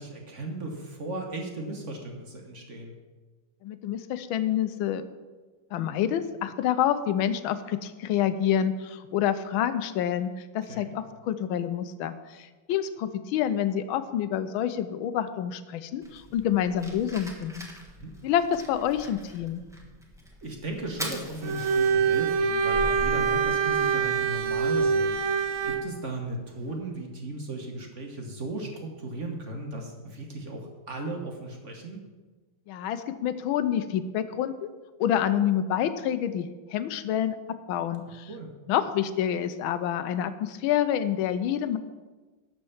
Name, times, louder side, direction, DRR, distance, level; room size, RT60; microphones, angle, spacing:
voice 1, 0.0-2.9 10.7-10.9 17.9-18.1 20.4-32.0 38.3-38.5, right 2 dB, 45° right, 2 dB, 1.2 m, -36 dB
voice 2, 3.6-5.0 5.7-17.7 18.2-19.6 32.7-34.7 35.0-38.3 38.7-41.8, left 10 dB, 90° left, 12 dB, 1.4 m, -28 dB
Fire, 16.0-25.7, equal, ahead, 1.0 m, -42 dB
Bowed string instrument, 21.4-25.9, right 5 dB, 65° right, 0.8 m, -25 dB
11.5 x 4.5 x 7.0 m, 1.3 s
omnidirectional pair, 2.2 m